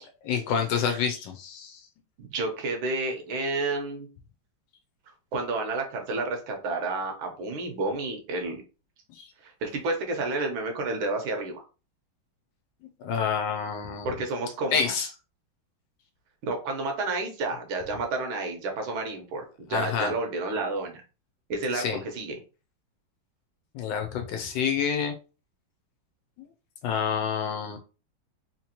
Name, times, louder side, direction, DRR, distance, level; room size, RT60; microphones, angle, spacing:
voice 1, 0.3-1.9 9.1-9.3 13.0-14.1 14.7-15.1 19.7-20.1 21.7-22.0 23.7-25.2 26.8-27.8, left 7 dB, 75° left, 6 dB, 1.1 m, -28 dB
voice 2, 2.2-4.1 5.3-8.6 9.4-11.6 14.0-14.9 16.4-21.0 21.5-21.9 22.1-22.4, right 3 dB, 85° right, 3 dB, 1.8 m, -30 dB
3.8 x 2.9 x 2.9 m, 0.33 s
omnidirectional pair, 2.2 m